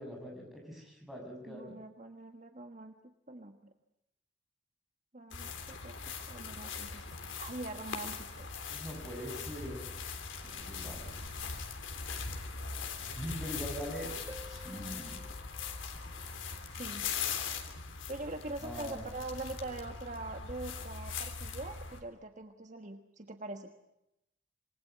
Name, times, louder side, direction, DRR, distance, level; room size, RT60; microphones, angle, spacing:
voice 1, 0.0-1.8 8.7-9.8 10.4-11.1 13.2-14.1 14.5-15.3 18.6-19.1, equal, ahead, 0 dB, 6.9 m, -43 dB
voice 2, 1.5-3.7 5.1-7.0 7.4-8.5 16.7-17.1 18.1-23.7, right 2 dB, 40° right, 6 dB, 1.5 m, -43 dB
sound 1, 5.3-22.0, left 5 dB, 80° left, 3.4 m, -41 dB
Harp, 14.3-16.8 20.3-20.4, left 1 dB, 20° right, 1.6 m, -53 dB
27.0 x 20.5 x 9.3 m, 0.86 s
head